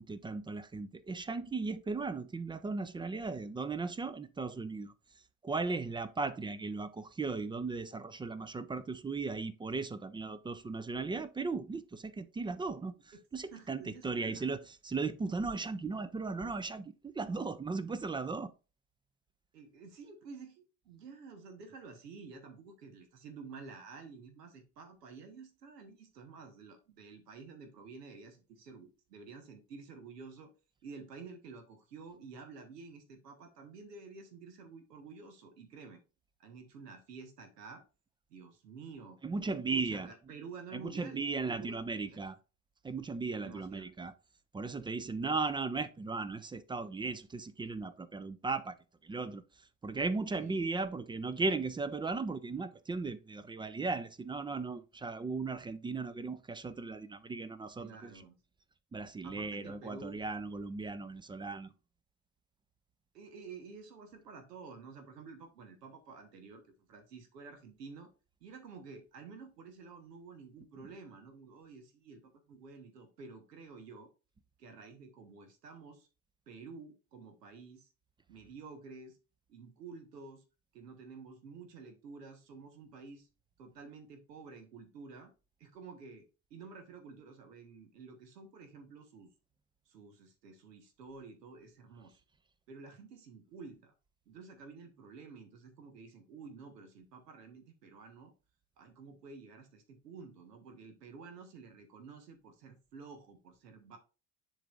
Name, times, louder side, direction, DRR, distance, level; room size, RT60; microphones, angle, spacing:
voice 1, 0.0-4.9 5.4-18.5 39.2-40.1 40.7-42.4 42.8-44.1 44.5-48.8 49.0-58.2 58.9-61.7, right 4 dB, 10° right, 0.3 m, -37 dB
voice 2, 13.5-14.5 19.5-30.5 30.8-36.0 36.4-37.8 38.3-39.2 39.7-42.2 43.4-43.9 50.4-50.6 57.8-58.4 59.2-60.2 63.1-66.6 66.9-68.1 68.4-74.1 74.6-76.1 76.5-77.9 78.3-79.2 79.5-80.4 80.7-83.3 83.6-85.3 85.6-89.3 89.9-92.2 92.7-93.9 94.3-98.3 98.8-104.0, right 4 dB, 85° right, 1.1 m, -50 dB
10.0 x 3.8 x 2.5 m
hypercardioid pair, 70°, 47 cm